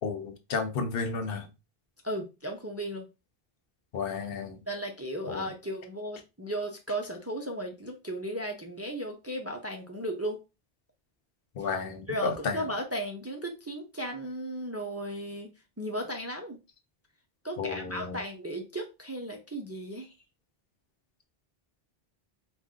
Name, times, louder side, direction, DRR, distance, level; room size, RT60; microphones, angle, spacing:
voice 1, 0.0-1.5 3.9-4.6 5.2-5.5 11.6-12.6 17.6-18.2, left 5 dB, 70° left, 0.9 m, -32 dB
voice 2, 2.0-3.1 4.7-10.4 11.6-11.7 12.1-16.6 17.4-20.1, right 1 dB, 20° right, 0.5 m, -35 dB
4.2 x 2.4 x 3.6 m
omnidirectional pair, 1.0 m